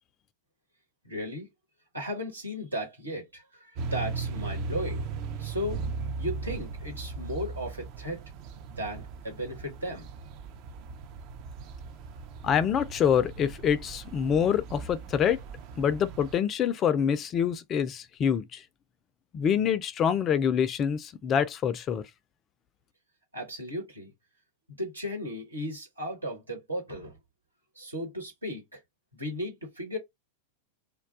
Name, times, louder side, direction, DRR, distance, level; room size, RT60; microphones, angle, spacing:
voice 1, 1.0-1.5 1.9-5.0 5.4-5.8 6.2-8.2 8.7-10.1 23.3-24.1 24.8-27.2 27.8-28.8 29.1-30.0, equal, 80° right, 1.2 m, -35 dB
sound 1, 3.8-16.4, right 4 dB, 40° right, 0.4 m, -38 dB
voice 2, 12.4-15.4 15.8-18.6 19.3-22.0, left 8 dB, 30° left, 0.3 m, -26 dB
2.3 x 2.2 x 3.6 m
figure-of-eight pair, 90°, 0 cm